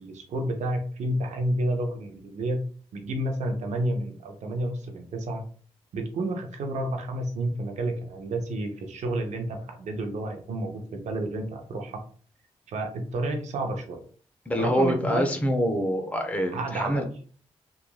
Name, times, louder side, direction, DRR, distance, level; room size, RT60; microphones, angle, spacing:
voice 1, 0.0-2.6 2.9-5.4 5.9-12.0 12.7-14.0 14.6-15.3 16.5-17.0, right 1 dB, 75° right, 4 dB, 0.6 m, -30 dB
voice 2, 14.5-17.0, equal, 10° left, 3 dB, 0.7 m, -25 dB
2.9 x 2.4 x 2.3 m, 0.43 s
supercardioid pair, 45°, 12 cm